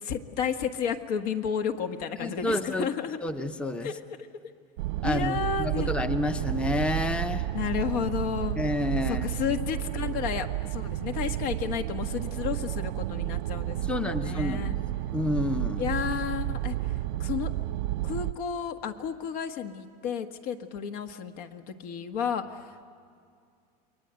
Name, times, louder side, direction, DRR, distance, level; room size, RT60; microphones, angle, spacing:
voice 1, 0.0-3.2 3.8-3.9 5.0-5.9 7.5-8.6 9.1-14.8 15.8-17.5 18.0-22.9, left 7 dB, 65° left, 6 dB, 1.6 m, -32 dB
voice 2, 2.2-2.9 3.2-3.9 5.0-7.5 8.6-9.3 13.9-14.7 15.1-15.8, left 2 dB, 5° left, 9 dB, 0.7 m, -29 dB
sound 1, 4.8-18.3, right 15 dB, 90° right, 0.6 m, -31 dB
29.5 x 21.5 x 9.0 m, 2.3 s
supercardioid pair, 145°, 21 cm